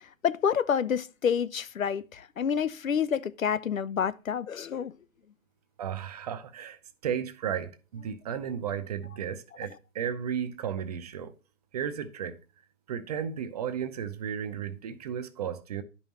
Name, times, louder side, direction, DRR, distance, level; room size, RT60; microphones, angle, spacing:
voice 1, 0.2-4.9, left 7 dB, 80° left, 0.7 m, -28 dB
voice 2, 5.8-11.3 11.7-12.4 12.9-15.8, right 8 dB, 30° right, 0.6 m, -34 dB
11.0 x 5.5 x 2.9 m
figure-of-eight pair, 135°, 40 cm